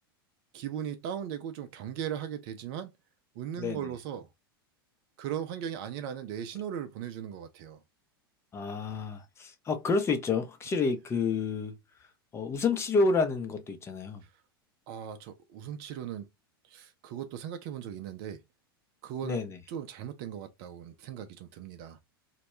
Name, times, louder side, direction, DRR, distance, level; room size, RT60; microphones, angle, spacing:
voice 1, 0.5-2.9 3.4-4.3 5.2-7.8 14.9-16.3 16.7-18.4 19.0-19.4 19.7-22.0, right 9 dB, 50° right, 0.4 m, -38 dB
voice 2, 3.6-3.9 8.5-11.7 12.0-12.1 12.3-14.2 19.2-19.6, left 4 dB, 20° left, 0.6 m, -29 dB
2.2 x 2.0 x 2.9 m
hypercardioid pair, 90°, 13 cm